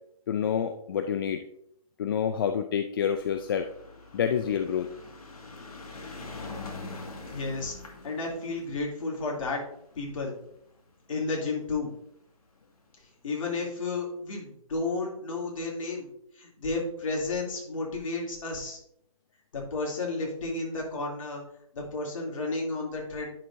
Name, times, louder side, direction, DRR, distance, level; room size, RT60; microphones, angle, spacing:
voice 1, 0.3-1.4 2.0-3.7 4.1-4.9, left 8 dB, 35° left, 8 dB, 0.4 m, -28 dB
sound 1, 3.1-11.6 12.4-12.5 12.7-12.8 13.0-13.1, left 3 dB, 75° left, 1.9 m, -44 dB
voice 2, 7.3-7.7 8.0-9.6 10.0-10.3 11.1-11.9 13.2-16.1 16.4-18.8 19.5-21.4 21.7-23.3, left 3 dB, 55° left, -2 dB, 2.9 m, -32 dB
10.0 x 6.2 x 2.7 m, 0.72 s
hypercardioid pair, 150°, 19 cm